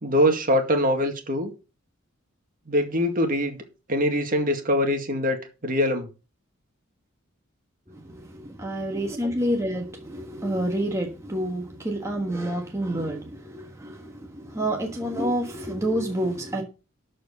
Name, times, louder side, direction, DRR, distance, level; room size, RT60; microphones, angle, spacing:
voice 1, 0.0-1.5 2.7-3.6 3.9-6.1, equal, 40° right, 2.0 m, -23 dB
voice 2, 7.9-16.6, right 1 dB, 15° right, 1.4 m, -28 dB
13.0 x 4.6 x 7.0 m
head